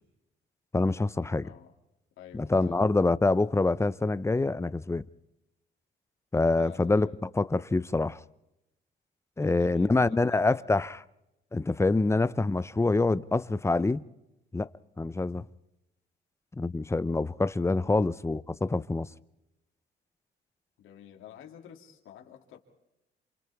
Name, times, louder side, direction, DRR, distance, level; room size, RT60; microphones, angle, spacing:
voice 1, 0.7-1.5 2.3-5.0 6.3-8.2 9.4-11.0 11.5-14.0 14.5-14.7 15.0-15.4 16.6-19.1, left 3 dB, 15° left, 0.7 m, -26 dB
voice 2, 1.4-1.7 2.2-2.9 6.6-7.2 9.4-10.7 17.8-18.1 20.8-22.6, left 10 dB, 85° left, 2.8 m, -50 dB
28.5 x 27.5 x 3.6 m
cardioid pair, 90°, 20 cm